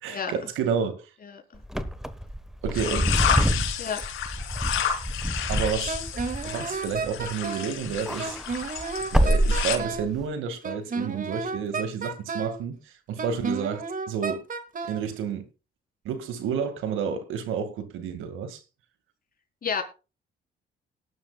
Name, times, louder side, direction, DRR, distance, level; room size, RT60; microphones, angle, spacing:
voice 1, 0.0-1.1 2.6-3.1 5.5-6.0 6.4-8.4 9.1-14.5 14.8-15.5 16.0-18.6, right 7 dB, 90° right, 2.1 m, -30 dB
voice 2, 1.2-1.6 3.8-4.0 19.6-19.8, left 6 dB, 45° left, 4.2 m, -31 dB
Wind / Car, 1.6-7.5 7.8-10.2, right 1 dB, ahead, 1.3 m, -27 dB
sound 1, 2.7-9.8, left 8 dB, 85° left, 3.6 m, -31 dB
Wind instrument woodwind instrument, 5.9-7.7 8.2-10.1 10.6-12.6 13.2-15.0, right 4 dB, 45° right, 2.1 m, -32 dB
18.5 x 11.5 x 2.4 m
cardioid pair, 90°, 20 cm